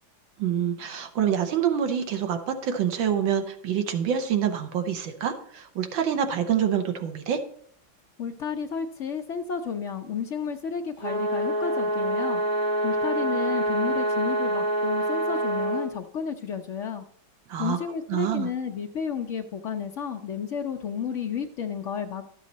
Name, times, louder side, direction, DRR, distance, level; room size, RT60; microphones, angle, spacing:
voice 1, 0.4-7.4 17.5-17.8 18.1-18.5, right 8 dB, 80° right, 7 dB, 1.7 m, -26 dB
voice 2, 8.2-12.4 12.8-17.0 17.6-22.3, left 7 dB, 80° left, 4 dB, 0.6 m, -32 dB
sound 1, 11.0-15.9, right 1 dB, 60° right, 3.2 m, -26 dB
12.5 x 7.4 x 4.0 m, 0.64 s
omnidirectional pair, 2.1 m